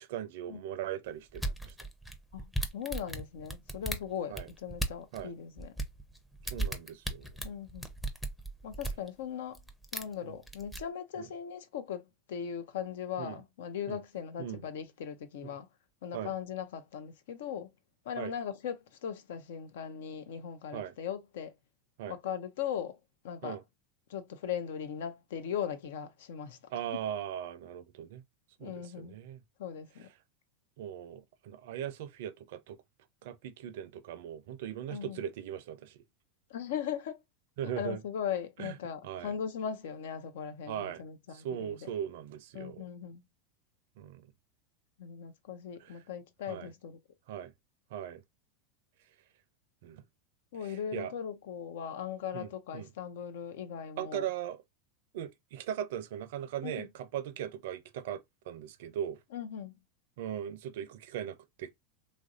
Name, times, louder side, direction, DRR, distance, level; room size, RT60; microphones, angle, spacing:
voice 1, 0.0-1.9 4.3-4.5 5.1-5.3 6.4-7.4 10.2-10.3 11.2-11.3 13.2-13.4 13.9-14.0 14.4-14.6 15.4-15.5 16.1-16.3 18.2-18.3 20.7-20.9 22.0-22.1 23.4-23.6 26.7-28.2 28.6-29.4 30.8-32.8 33.2-36.0 37.6-38.0 38.6-38.8 39.0-39.3 40.7-41.0 41.3-42.9 44.0-44.3 45.8-46.0 46.4-46.7 47.3-47.5 47.9-48.2 49.8-50.0 50.6-51.1 52.3-52.9 54.0-54.6 55.1-59.2 60.2-61.7, right 10 dB, 70° right, 0.5 m, -39 dB
sound 1, 1.3-5.2 5.6-9.1 9.5-10.1 10.5-10.8, right 1 dB, 5° left, 0.6 m, -36 dB
voice 2, 2.3-5.8 7.4-7.9 8.6-9.6 9.9-15.7 16.0-17.7 18.0-21.5 22.1-23.0 23.2-23.6 24.1-26.6 28.6-29.2 29.6-30.1 34.9-35.2 36.5-37.2 37.6-41.9 42.5-43.2 45.0-47.0 50.5-54.3 56.6-56.9 59.3-59.7, left 8 dB, 75° left, 0.6 m, -39 dB
3.1 x 2.5 x 2.4 m
hypercardioid pair, 100°, 0 cm